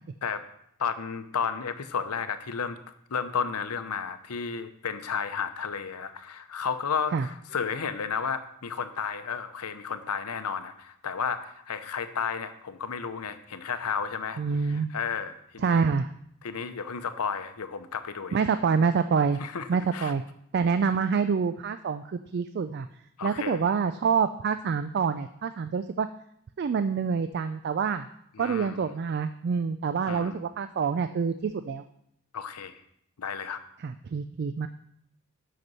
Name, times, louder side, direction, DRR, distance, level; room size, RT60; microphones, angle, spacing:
voice 1, 0.8-2.8 3.1-15.8 16.4-18.4 19.4-19.7 19.9-20.1 23.2-23.7 28.3-28.9 30.1-30.4 32.3-32.7 33.2-33.6, left 6 dB, 90° left, 10 dB, 0.7 m, -32 dB
voice 2, 14.4-14.9 15.6-16.1 18.3-19.4 19.7-20.2 20.5-22.9 23.2-26.1 26.6-28.1 28.4-31.8 33.8-34.7, right 5 dB, 50° right, 11 dB, 0.3 m, -26 dB
8.0 x 6.0 x 5.4 m, 0.73 s
head